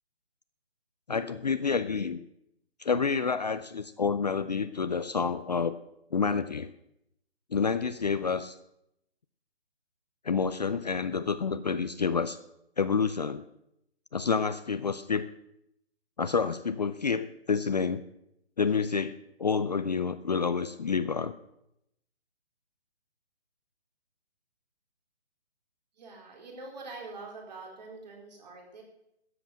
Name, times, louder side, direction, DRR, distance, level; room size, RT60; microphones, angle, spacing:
voice 1, 1.1-2.2 2.8-5.7 6.1-6.7 7.5-8.6 10.2-12.4 12.8-13.4 14.1-15.3 16.2-18.0 18.6-19.1 19.4-21.3, left 5 dB, 40° left, 12 dB, 0.5 m, -28 dB
voice 2, 26.0-28.8, right 3 dB, 40° right, 1 dB, 4.0 m, -44 dB
13.5 x 8.0 x 7.6 m, 0.80 s
hypercardioid pair, 160°, 33 cm